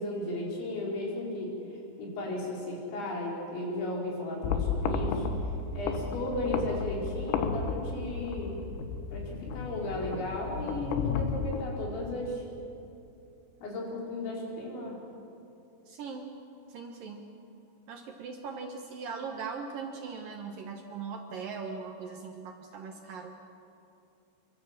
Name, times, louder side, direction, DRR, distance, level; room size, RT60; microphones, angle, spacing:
voice 1, 0.0-1.5 2.0-8.6 9.1-12.4 13.6-15.0, left 1 dB, 60° left, -2 dB, 6.9 m, -35 dB
sound 1, 4.4-11.6, left 5 dB, 80° left, 3.9 m, -33 dB
voice 2, 15.9-16.3 16.7-17.2 17.9-23.4, right 5 dB, 70° right, 3 dB, 2.1 m, -40 dB
27.5 x 23.5 x 7.5 m, 2.7 s
omnidirectional pair, 5.9 m